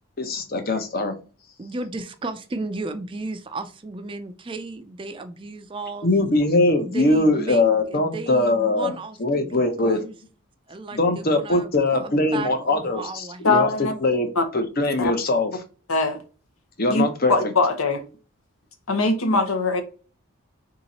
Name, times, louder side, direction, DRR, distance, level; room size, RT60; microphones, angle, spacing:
voice 1, 0.2-1.1 6.0-8.9 9.2-10.0 10.9-14.3 14.5-15.5 16.8-17.3, left 2 dB, 45° left, 0.7 m, -21 dB
voice 2, 1.6-6.1 6.8-10.1 10.7-13.7, right 3 dB, 25° right, 0.4 m, -34 dB
voice 3, 13.4-13.9 14.4-14.5 15.0-15.1 15.9-16.2 16.9-17.0 17.3-18.0 18.9-19.8, left 3 dB, 80° left, 0.8 m, -21 dB
3.7 x 2.8 x 4.1 m
head